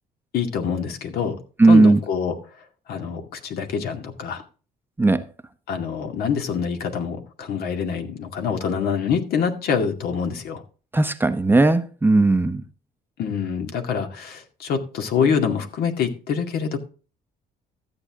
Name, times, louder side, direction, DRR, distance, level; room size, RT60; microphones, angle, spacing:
voice 1, 0.3-2.4 2.9-4.4 5.7-10.6 13.2-16.8, left 6 dB, 65° left, 2.2 m, -25 dB
voice 2, 1.6-2.0 5.0-5.2 10.9-12.6, right 2 dB, 10° right, 0.8 m, -16 dB
13.5 x 8.0 x 3.7 m
cardioid pair, 110°, 17 cm